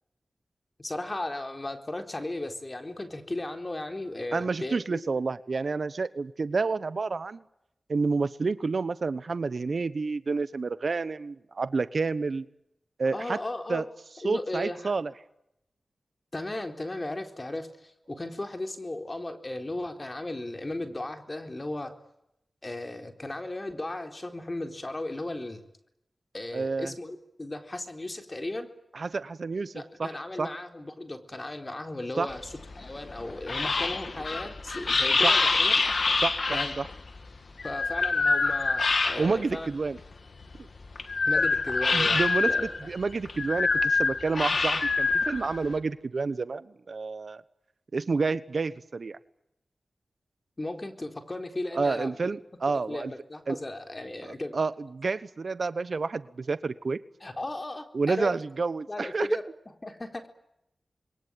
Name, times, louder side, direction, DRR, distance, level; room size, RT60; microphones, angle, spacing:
voice 1, 0.8-5.0 13.1-13.8 14.2-14.9 16.3-21.9 22.6-25.6 26.3-28.7 29.7-35.7 36.5-36.7 37.6-39.7 41.3-42.7 50.6-52.2 52.7-54.6 57.2-58.4 58.9-59.5 59.8-60.3, left 2 dB, 35° left, 6 dB, 4.0 m, -36 dB
voice 2, 4.3-7.4 7.9-12.5 13.0-13.4 13.7-13.8 14.2-15.1 26.5-26.9 28.9-29.7 30.0-30.1 30.4-30.5 32.2-32.3 34.9-35.0 35.2-35.4 36.2-36.9 39.2-40.0 41.3-41.5 41.9-47.4 47.9-49.2 51.7-53.1 53.5-53.6 54.5-57.0 57.9-59.3, right 4 dB, 65° right, 15 dB, 1.1 m, -29 dB
sound 1, 32.3-39.6 40.0-45.8, left 4 dB, 65° left, 2.3 m, -26 dB
28.0 x 22.5 x 9.2 m, 0.82 s
cardioid pair, 40°, 0 cm